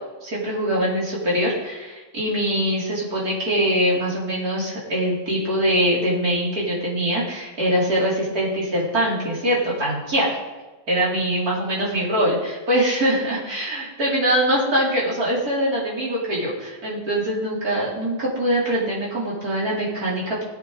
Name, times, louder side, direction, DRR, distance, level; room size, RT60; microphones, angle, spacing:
voice 1, 0.2-10.4 10.9-20.4, equal, 55° right, -6 dB, 4.4 m, -23 dB
19.5 x 9.0 x 4.1 m, 1.2 s
omnidirectional pair, 1.9 m